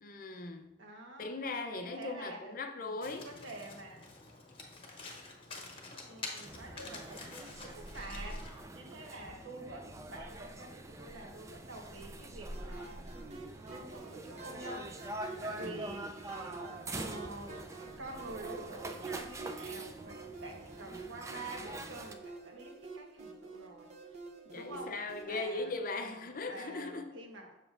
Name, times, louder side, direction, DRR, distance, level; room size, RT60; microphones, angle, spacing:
voice 1, 0.0-0.7 1.2-3.3 15.5-15.8 24.5-27.1, left 3 dB, 45° left, 0.5 m, -39 dB
voice 2, 0.8-1.4 1.8-4.1 6.0-13.0 13.7-14.9 15.4-16.6 16.9-17.7 18.0-24.2 24.5-25.0 25.3-27.6, right 2 dB, 75° right, 1.2 m, -48 dB
Domestic sounds home sounds, 3.0-8.6, left 3 dB, 30° left, 0.9 m, -48 dB
sound 1, 6.4-22.1, right 1 dB, 15° right, 0.3 m, -45 dB
sound 2, 12.5-25.4, right 4 dB, 35° right, 0.7 m, -48 dB
7.0 x 6.7 x 2.5 m
head